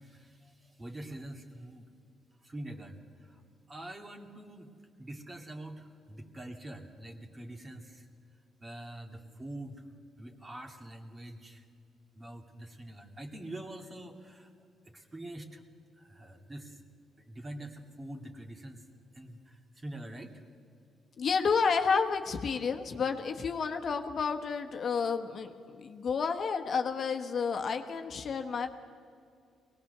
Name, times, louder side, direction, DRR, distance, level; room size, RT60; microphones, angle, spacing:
voice 1, 0.0-1.9 2.4-3.4 3.7-4.7 5.0-8.1 8.6-9.9 10.2-11.7 12.1-14.5 14.8-15.6 16.0-16.8 17.2-18.8 19.1-20.4, right 1 dB, 25° right, 4 dB, 2.3 m, -45 dB
voice 2, 21.2-28.7, left 5 dB, 55° left, 5 dB, 1.2 m, -30 dB
21.5 x 19.0 x 6.7 m, 2.3 s
cardioid pair, 90°, 0 cm